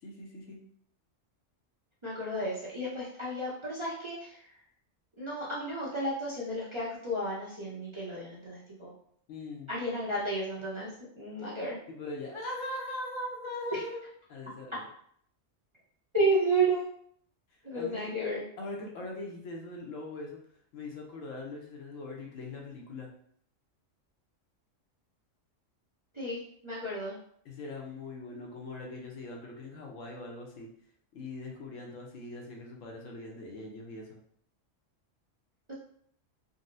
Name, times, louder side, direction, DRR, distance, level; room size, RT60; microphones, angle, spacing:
voice 1, 0.0-0.6 9.3-9.7 11.9-14.0 14.3-14.8 17.7-18.1 18.6-20.4 20.7-23.1 27.4-30.7 31.1-34.2, left 2 dB, 80° left, 0 dB, 1.1 m, -41 dB
voice 2, 2.0-4.4 5.2-8.9 9.7-11.8 13.7-13.8 16.1-16.9 17.6-18.4 26.1-27.1 35.7-35.8, right 2 dB, 35° right, -8 dB, 0.5 m, -32 dB
3.8 x 2.0 x 2.5 m, 0.64 s
omnidirectional pair, 1.3 m